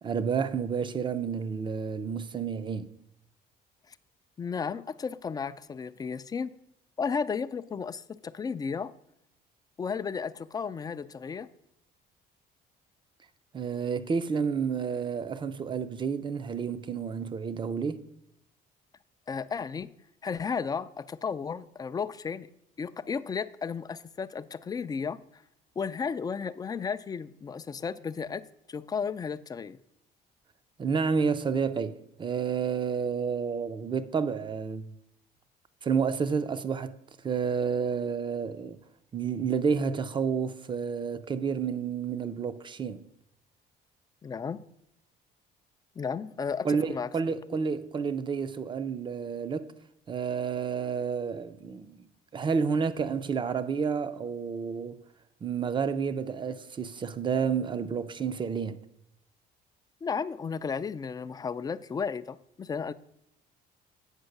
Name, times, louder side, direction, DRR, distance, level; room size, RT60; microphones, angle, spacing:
voice 1, 0.0-2.9 13.5-18.0 30.8-34.9 35.8-36.9 37.2-38.8 39.1-43.0 46.6-49.7 50.1-52.1 52.3-55.0 55.4-58.8, right 6 dB, 30° right, 0.6 m, -30 dB
voice 2, 4.4-6.6 7.0-8.9 9.8-11.5 19.3-19.9 20.2-22.5 22.8-25.4 25.8-29.8 44.2-44.6 46.0-47.1 47.5-47.6 60.0-62.9, left 6 dB, 25° left, 0.4 m, -34 dB
8.1 x 5.4 x 6.5 m
cardioid pair, 110°, 17 cm